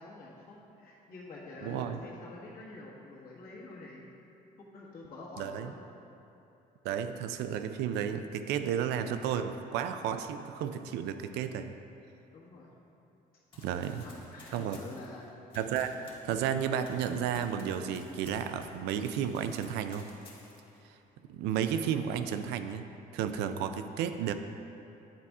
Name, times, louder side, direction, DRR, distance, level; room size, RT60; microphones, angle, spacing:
voice 1, 0.0-4.1 4.6-5.8 12.3-12.7 13.7-15.4, left 2 dB, 60° left, -5 dB, 1.5 m, -47 dB
voice 2, 1.6-2.0 5.4-5.7 6.8-11.7 13.6-14.0 14.5-14.8 15.6-15.9 16.2-20.1 21.3-22.9 23.1-24.3, right 8 dB, 85° right, 9 dB, 0.4 m, -32 dB
Run, 13.5-18.8 19.1-20.8, left 2 dB, 30° left, 1.4 m, -53 dB
8.7 x 4.2 x 3.6 m, 3.0 s
cardioid pair, 110°, 17 cm